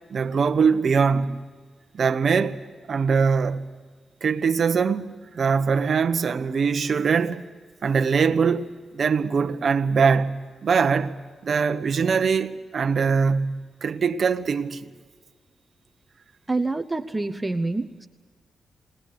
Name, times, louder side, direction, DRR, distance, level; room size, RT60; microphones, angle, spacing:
voice 1, 0.1-1.4 1.9-2.6 2.9-3.7 4.2-5.1 5.3-7.4 7.8-14.9, right 5 dB, 60° right, 1.1 m, -22 dB
voice 2, 16.5-18.1, right 2 dB, 20° right, 0.9 m, -27 dB
22.5 x 18.5 x 8.5 m
cardioid pair, 85°, 0 cm